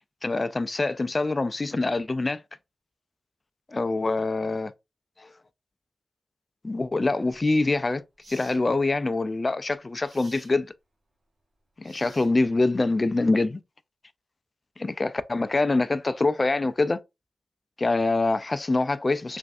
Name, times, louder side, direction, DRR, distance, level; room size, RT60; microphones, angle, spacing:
voice 1, 0.2-2.4 3.7-4.7 5.2-5.3 6.6-8.0 8.3-10.7 11.8-13.6 14.8-17.0 17.8-19.4, left 3 dB, 40° left, 0.3 m, -25 dB
sound 1, 7.3-7.5 8.2-8.6 10.0-10.5 11.8-12.6, right 2 dB, 75° right, 1.2 m, -51 dB
3.2 x 2.5 x 2.5 m
cardioid pair, 45°, 0 cm